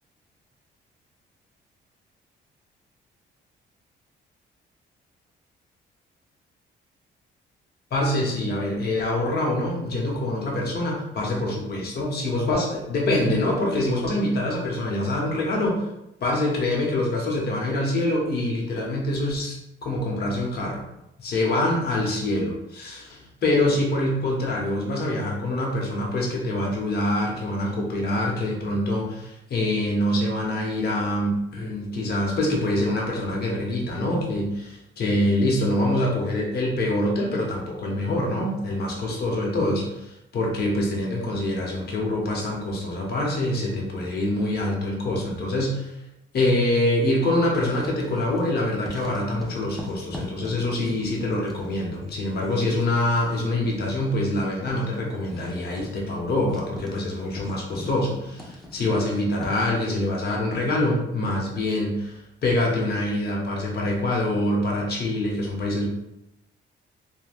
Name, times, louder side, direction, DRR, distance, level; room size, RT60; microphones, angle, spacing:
voice 1, 7.9-15.8 16.2-20.8 21.2-45.9 46.3-65.9, left 1 dB, 50° left, -2 dB, 0.9 m, -25 dB
Writing, 47.4-48.5 48.8-59.8, left 2 dB, ahead, 0.7 m, -41 dB
3.3 x 2.1 x 2.4 m, 0.86 s
cardioid pair, 90°, 20 cm